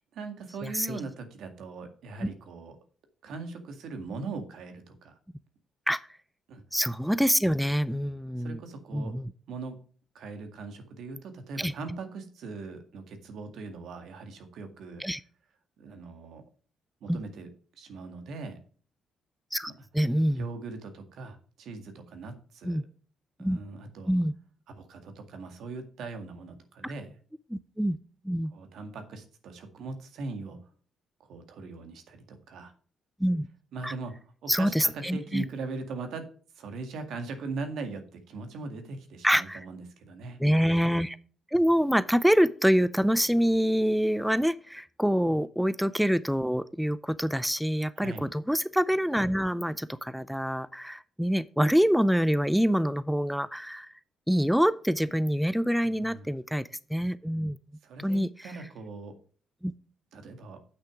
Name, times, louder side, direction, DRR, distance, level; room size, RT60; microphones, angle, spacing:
voice 1, 0.0-2.8 3.2-5.2 6.5-6.6 7.9-8.0 8.4-9.2 9.5-9.8 10.1-15.0 15.8-16.4 17.0-17.5 17.8-18.6 19.8-19.9 20.4-22.8 23.4-24.2 24.7-27.1 28.5-30.7 31.2-32.7 33.7-36.3 36.5-40.4 45.2-45.3 48.0-48.3 56.0-56.3 57.8-59.2 60.1-60.6, right 3 dB, 75° right, 7 dB, 1.9 m, -40 dB
voice 2, 0.6-1.0 5.9-6.0 6.7-8.6 8.9-9.2 11.6-11.7 15.0-15.2 17.1-17.2 19.5-20.5 22.6-22.8 23.4-23.6 24.1-24.3 26.8-26.9 27.5-28.0 28.2-28.5 33.2-33.5 33.8-33.9 34.5-35.4 39.2-39.6 40.4-41.2 41.5-53.9 54.3-57.6 58.0-58.5 59.6-59.7, equal, ahead, 17 dB, 0.4 m, -26 dB
8.4 x 6.4 x 4.8 m, 0.43 s
cardioid pair, 90°, 0 cm